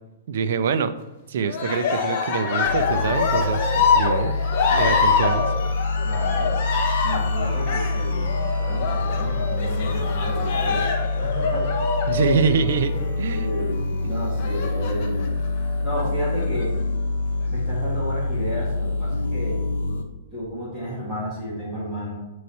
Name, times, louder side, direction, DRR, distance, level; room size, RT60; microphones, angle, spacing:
voice 1, 0.3-0.9 1.3-4.3 4.7-5.5 12.1-12.9 13.2-13.5 14.0-14.1, right 6 dB, 55° right, 10 dB, 0.4 m, -25 dB
Cheering, 1.4-13.1 14.4-15.3 16.0-16.6, left 5 dB, 35° left, 0.7 m, -25 dB
sound 1, 2.6-20.0, left 2 dB, 75° left, 0.8 m, -26 dB
voice 2, 6.0-6.5 7.0-10.8 11.2-11.7 13.3-15.2 15.8-16.7 17.5-19.6 20.3-22.1, equal, 5° right, -10 dB, 1.7 m, -32 dB
8.0 x 3.1 x 4.0 m, 1.1 s
hypercardioid pair, 175°, 0 cm